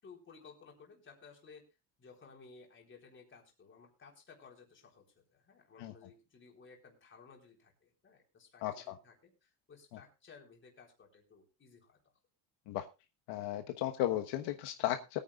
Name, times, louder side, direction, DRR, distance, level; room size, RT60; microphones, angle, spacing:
voice 1, 0.0-1.6 2.0-12.0, left 5 dB, 25° left, 1 dB, 3.9 m, -57 dB
voice 2, 8.6-9.0 12.7-12.9 13.3-15.2, left 13 dB, 70° left, 6 dB, 1.2 m, -35 dB
21.5 x 9.4 x 2.4 m, 0.27 s
cardioid pair, 155°, 43 cm